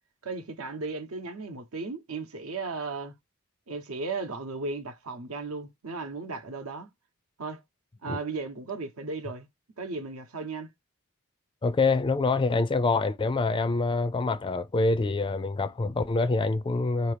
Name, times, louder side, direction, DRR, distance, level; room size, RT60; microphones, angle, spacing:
voice 1, 0.2-3.1 3.7-6.9 7.4-7.6 8.0-9.5 9.8-10.7, right 3 dB, 80° right, 0.9 m, -35 dB
voice 2, 11.6-17.1, left 3 dB, 25° left, 0.3 m, -26 dB
4.3 x 2.8 x 3.3 m
head